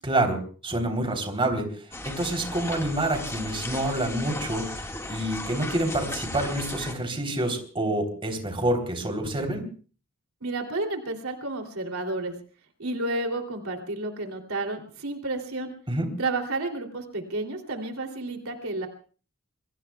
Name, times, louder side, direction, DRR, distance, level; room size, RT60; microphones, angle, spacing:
voice 1, 0.0-9.6 15.9-16.1, right 1 dB, 25° right, 4 dB, 3.4 m, -27 dB
sound 1, 1.9-6.9, left 2 dB, 15° left, 1.8 m, -36 dB
voice 2, 10.4-12.3 12.8-15.7 16.2-18.9, right 2 dB, 90° right, 4 dB, 2.9 m, -31 dB
27.5 x 22.5 x 2.3 m, 0.39 s
head